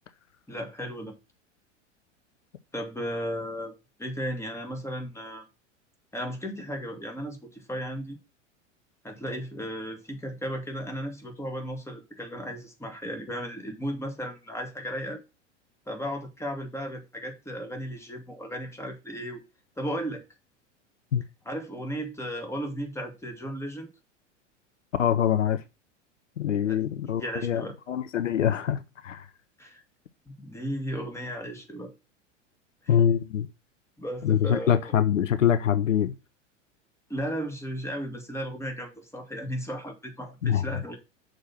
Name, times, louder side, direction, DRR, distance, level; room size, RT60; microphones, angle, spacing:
voice 1, 0.5-1.1 2.7-3.7 4.0-5.4 6.1-8.2 9.0-15.2 15.9-19.4 19.8-20.2 21.5-23.9 26.7-26.8 27.1-27.7 29.6-29.8 30.3-31.9 32.8-32.9 34.0-34.9 37.1-41.0, equal, 5° left, 2.3 m, -35 dB
voice 2, 25.0-25.6 26.4-29.3 32.9-33.5 34.2-36.1 40.4-40.6, left 9 dB, 80° left, 0.7 m, -24 dB
6.4 x 4.4 x 5.9 m
figure-of-eight pair, 90°, 37 cm